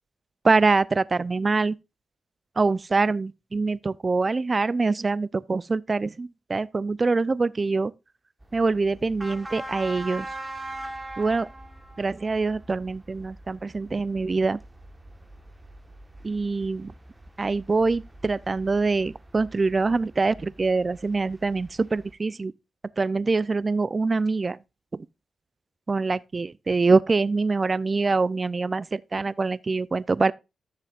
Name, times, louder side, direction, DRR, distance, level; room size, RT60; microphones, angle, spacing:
voice 1, 0.4-1.8 2.6-7.9 8.5-10.3 11.2-11.5 12.0-14.6 16.2-16.9 17.4-22.5 23.0-24.6 24.9-25.1 25.9-30.3, right 3 dB, 40° right, 0.6 m, -24 dB
sound 1, 8.4-22.1, right 1 dB, 15° right, 1.4 m, -42 dB
14.0 x 6.5 x 2.5 m
supercardioid pair, 50°, 0 cm